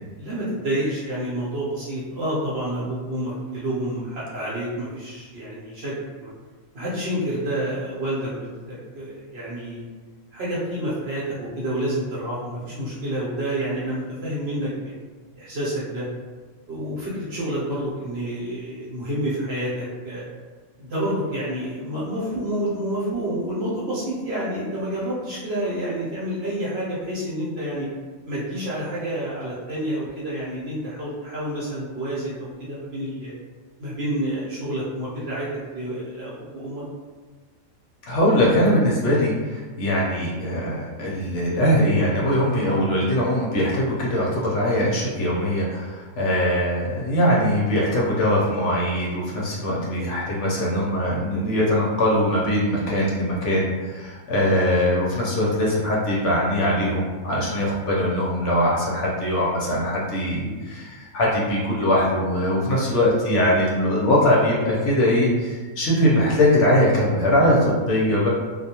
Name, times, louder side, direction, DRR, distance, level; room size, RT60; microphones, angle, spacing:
voice 1, 0.2-6.3 6.7-9.9 10.3-14.9 15.4-16.1 16.7-20.2 20.8-27.9 28.3-33.3 33.8-36.8 62.7-63.0, right 1 dB, 55° right, -8 dB, 0.9 m, -29 dB
voice 2, 38.1-68.3, left 1 dB, 65° left, -4 dB, 0.8 m, -21 dB
2.3 x 2.1 x 2.8 m, 1.4 s
omnidirectional pair, 1.4 m